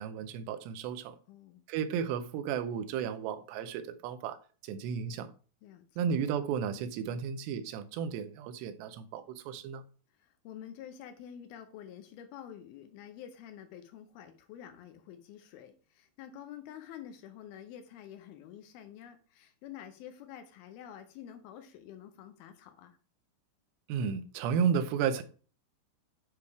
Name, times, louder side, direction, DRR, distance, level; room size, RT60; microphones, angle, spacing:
voice 1, 0.0-1.2 1.7-4.4 4.6-5.3 6.0-9.8 23.9-25.2, right 7 dB, 85° right, 2.8 m, -33 dB
voice 2, 1.3-1.6 5.6-5.8 10.2-23.0, left 10 dB, 75° left, 2.4 m, -48 dB
9.6 x 3.4 x 4.7 m
omnidirectional pair, 4.8 m